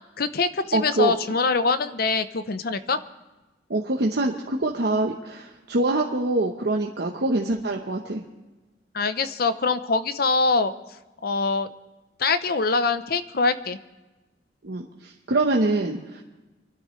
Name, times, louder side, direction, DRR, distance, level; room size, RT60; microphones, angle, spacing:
voice 1, 0.2-3.0 8.9-10.7 11.2-11.7 12.2-13.8, left 4 dB, 60° left, 11 dB, 0.7 m, -23 dB
voice 2, 0.7-1.2 3.7-8.2 14.6-16.2, right 2 dB, 65° right, 0 dB, 1.0 m, -25 dB
24.5 x 12.5 x 3.2 m, 1.1 s
head